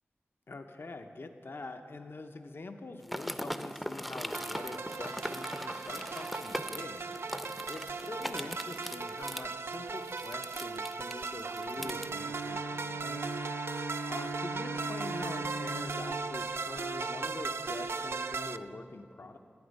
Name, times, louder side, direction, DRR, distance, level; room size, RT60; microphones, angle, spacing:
voice 1, 0.5-7.0 7.6-7.8 8.1-13.5 14.1-19.4, left 2 dB, 60° left, 6 dB, 0.5 m, -44 dB
sound 1, 3.0-12.1, equal, ahead, 0.5 m, -40 dB
sound 2, 4.3-18.6, right 4 dB, 70° right, 0.3 m, -38 dB
Bowed string instrument, 11.8-17.6, right 2 dB, 85° right, 0.7 m, -40 dB
11.5 x 7.9 x 5.2 m, 2.5 s
cardioid pair, 45°, 4 cm